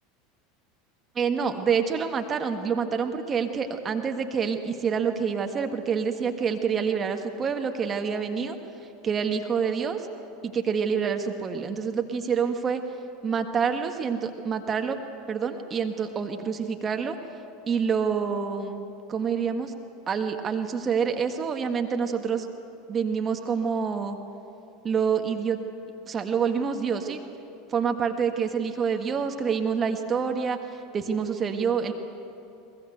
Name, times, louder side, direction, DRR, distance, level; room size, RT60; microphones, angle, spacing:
voice 1, 1.1-8.6 9.0-10.1 10.4-12.8 13.2-15.0 15.3-17.2 17.7-19.8 20.1-22.5 22.9-24.2 24.8-25.6 26.1-27.2 27.7-31.9, right 6 dB, 30° right, 5 dB, 1.7 m, -27 dB
22.0 x 21.5 x 8.0 m, 2.8 s
figure-of-eight pair, 80°, 0 cm